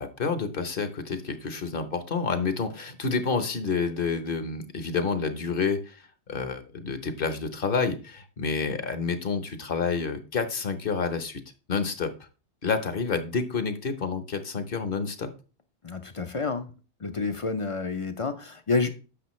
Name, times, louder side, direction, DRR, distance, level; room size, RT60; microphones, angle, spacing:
voice 1, 0.0-6.0 6.3-11.4 11.7-12.1 12.6-15.3, left 5 dB, 55° left, 1.1 m, -29 dB
voice 2, 15.8-18.9, left 4 dB, 35° left, 0.6 m, -29 dB
10.0 x 6.7 x 3.1 m
omnidirectional pair, 1.2 m